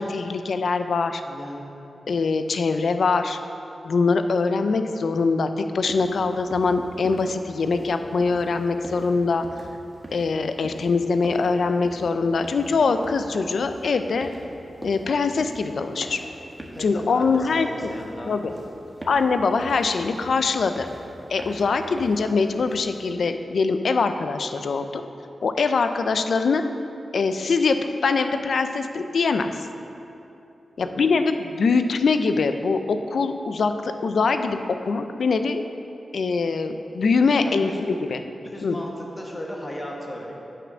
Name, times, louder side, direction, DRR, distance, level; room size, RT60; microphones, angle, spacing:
voice 1, 0.1-1.2 2.1-3.4 3.8-9.4 10.1-14.3 14.8-16.2 16.8-17.9 18.3-18.5 19.1-20.9 21.3-25.0 25.4-26.6 27.1-29.5 30.8-35.6 36.1-37.7 38.1-38.2 38.6-38.8, left 4 dB, 75° left, 8 dB, 0.5 m, -23 dB
voice 2, 1.2-1.6 16.7-18.3 30.8-31.0 37.4-37.8 38.5-40.3, equal, 25° left, -1 dB, 1.6 m, -36 dB
sound 1, 5.9-23.1, right 1 dB, 15° right, 1.3 m, -42 dB
8.6 x 6.7 x 6.2 m, 2.8 s
cardioid pair, 80°, 0 cm